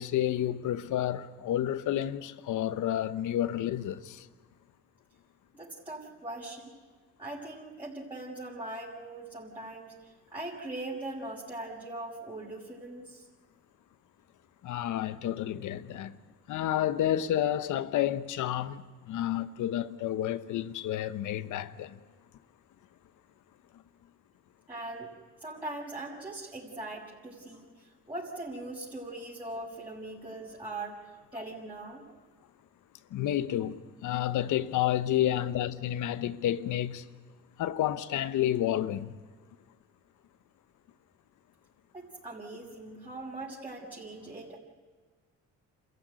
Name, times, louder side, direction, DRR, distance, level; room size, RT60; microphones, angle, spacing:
voice 1, 0.0-4.3 14.6-16.2 16.5-22.0 33.1-37.0 37.6-39.1, left 12 dB, 80° left, 1.0 m, -30 dB
voice 2, 5.5-6.7 7.2-13.3 24.7-25.1 25.4-32.0 41.9-44.6, right 2 dB, 15° right, 5.6 m, -41 dB
27.5 x 15.0 x 9.4 m
cardioid pair, 90°, 30 cm